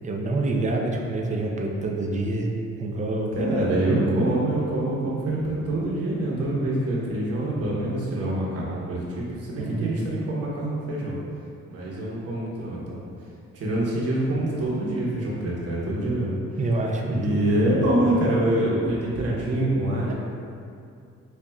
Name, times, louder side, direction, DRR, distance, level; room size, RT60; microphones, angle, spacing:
voice 1, 0.0-2.5 2.8-4.2 9.6-10.0 16.6-17.5 20.1-20.2, right 2 dB, 25° right, 0 dB, 0.5 m, -27 dB
voice 2, 3.3-11.1 11.7-13.0 13.5-16.3 17.1-20.1, right 1 dB, 50° right, -5 dB, 1.0 m, -25 dB
5.4 x 2.4 x 2.3 m, 2.4 s
cardioid pair, 90°, 30 cm